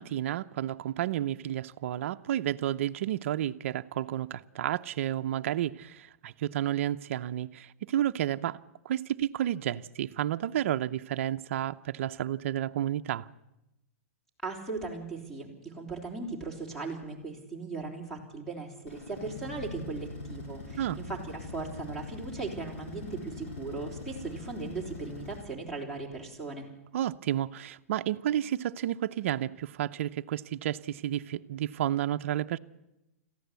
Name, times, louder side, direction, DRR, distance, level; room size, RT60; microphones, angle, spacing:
voice 1, 0.0-8.6 8.8-13.3 20.8-21.0 26.9-32.6, right 12 dB, 60° right, 0.7 m, -31 dB
voice 2, 14.4-26.7, right 3 dB, 5° left, 3.7 m, -38 dB
sound 1, 18.9-25.4, left 3 dB, 55° left, 6.8 m, -42 dB
22.0 x 15.0 x 8.2 m
hypercardioid pair, 150°, 8 cm